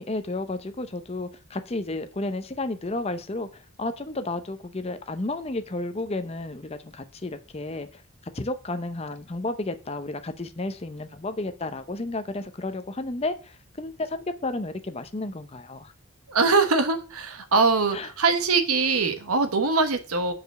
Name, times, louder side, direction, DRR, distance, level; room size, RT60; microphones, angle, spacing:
voice 1, 0.0-8.0 8.3-15.9 17.9-18.1, left 2 dB, 25° left, 0.6 m, -32 dB
voice 2, 16.3-20.3, right 4 dB, 80° right, 1.2 m, -22 dB
6.9 x 5.0 x 6.7 m
head